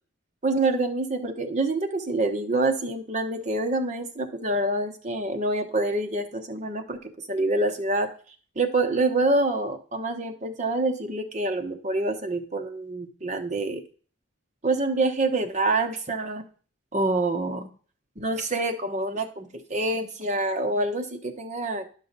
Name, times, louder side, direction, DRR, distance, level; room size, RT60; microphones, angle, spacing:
voice 1, 0.4-7.0 7.3-8.1 8.6-13.8 14.6-16.4 16.9-17.7 18.2-21.9, right 2 dB, 35° right, 5 dB, 1.0 m, -26 dB
10.5 x 5.8 x 4.0 m, 0.41 s
head